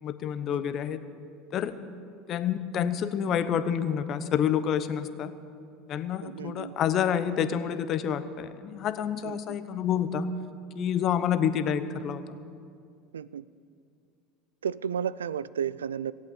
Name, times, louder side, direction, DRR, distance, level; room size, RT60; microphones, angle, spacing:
voice 1, 0.0-1.0 1.5-1.8 2.3-5.3 5.9-10.3 10.7-12.4, left 8 dB, 45° left, 12 dB, 0.8 m, -28 dB
voice 2, 6.2-6.7 9.2-9.6 13.1-13.4 14.6-16.1, right 8 dB, 85° right, 19 dB, 0.3 m, -33 dB
16.5 x 8.3 x 8.6 m, 2.4 s
hypercardioid pair, 80°, 0 cm